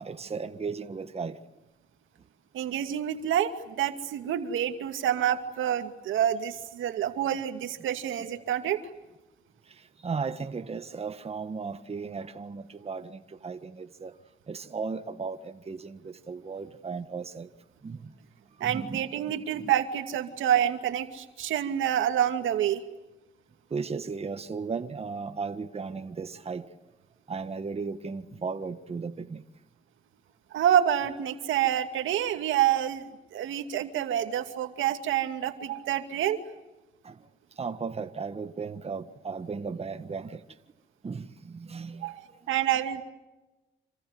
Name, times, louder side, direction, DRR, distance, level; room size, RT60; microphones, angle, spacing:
voice 1, 0.0-1.4 9.6-14.2 14.5-17.5 17.8-18.1 18.6-19.0 19.5-19.7 23.7-26.7 27.3-29.4 37.0-37.3 37.5-40.4 41.0-42.1 42.4-42.5, right 5 dB, 30° right, 1.6 m, -36 dB
voice 2, 2.5-8.8 18.6-22.8 30.5-33.0 33.3-36.4 42.0-43.0, right 10 dB, 80° right, 2.4 m, -27 dB
27.5 x 26.5 x 7.9 m
cardioid pair, 90°, 20 cm